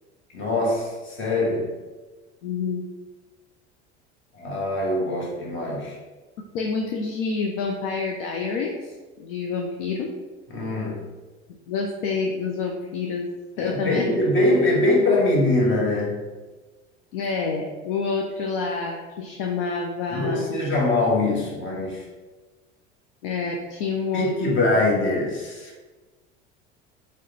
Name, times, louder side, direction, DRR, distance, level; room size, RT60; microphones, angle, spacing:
voice 1, 0.3-1.7 4.3-6.0 10.5-11.0 13.6-16.2 20.1-22.0 24.1-25.8, left 2 dB, 35° left, -2 dB, 1.3 m, -23 dB
voice 2, 2.4-2.8 6.5-10.1 11.7-13.3 13.6-14.0 17.1-20.6 23.2-24.6, left 4 dB, 55° left, 2 dB, 0.6 m, -28 dB
4.7 x 2.3 x 4.2 m, 1.2 s
figure-of-eight pair, 70°, 33 cm